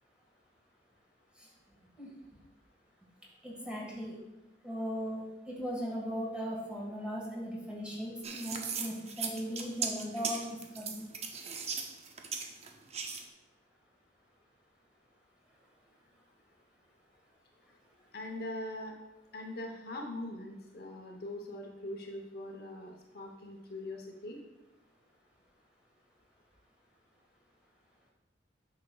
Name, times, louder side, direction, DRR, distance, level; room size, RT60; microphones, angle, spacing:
voice 1, 3.4-4.2 4.6-11.1, equal, 5° right, -4 dB, 1.6 m, -38 dB
sound 1, 8.2-13.2, right 5 dB, 35° right, 0.6 m, -38 dB
voice 2, 18.1-18.9 19.3-24.4, left 1 dB, 60° left, 2 dB, 0.8 m, -42 dB
8.4 x 5.7 x 2.3 m, 1.0 s
head